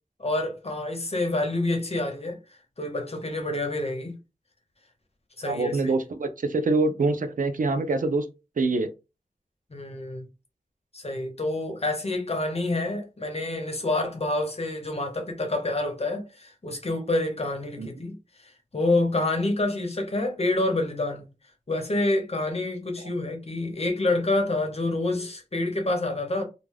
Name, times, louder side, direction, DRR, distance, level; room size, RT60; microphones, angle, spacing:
voice 1, 0.2-2.4 2.8-4.2 5.4-5.9 9.7-10.2 10.9-18.2 18.7-21.3 21.7-26.4, left 2 dB, 50° left, 0.8 m, -27 dB
voice 2, 5.4-8.3 8.6-8.9 17.8-17.9, right 3 dB, 85° right, 0.5 m, -25 dB
2.4 x 2.2 x 3.2 m
wide cardioid pair, 60°, 13 cm